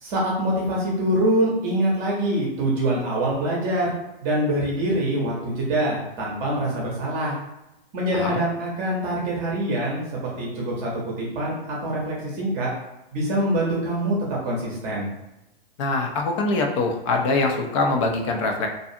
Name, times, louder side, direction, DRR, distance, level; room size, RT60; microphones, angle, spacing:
voice 1, 0.0-3.9 4.2-7.3 7.9-10.9 11.2-12.7 13.1-14.2 14.4-15.1, right 1 dB, 25° right, -4 dB, 0.7 m, -24 dB
voice 2, 15.8-18.7, left 3 dB, 35° left, 2 dB, 0.4 m, -23 dB
2.5 x 2.3 x 2.6 m, 0.95 s
hypercardioid pair, 135°, 29 cm